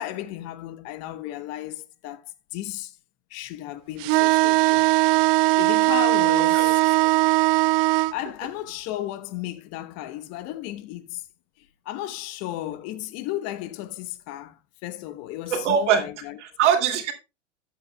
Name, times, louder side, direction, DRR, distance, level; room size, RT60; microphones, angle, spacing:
voice 1, 0.0-3.0 3.3-4.9 5.6-6.8 8.1-11.2 11.6-16.4, left 14 dB, 45° left, 1.1 m, -34 dB
sound 1, 4.0-8.1, right 22 dB, 45° right, 0.5 m, -19 dB
voice 2, 6.4-6.7 7.0-7.1 15.5-16.1 16.4-17.1, right 8 dB, 70° right, 2.6 m, -23 dB
13.0 x 8.2 x 2.2 m
hypercardioid pair, 105°, 36 cm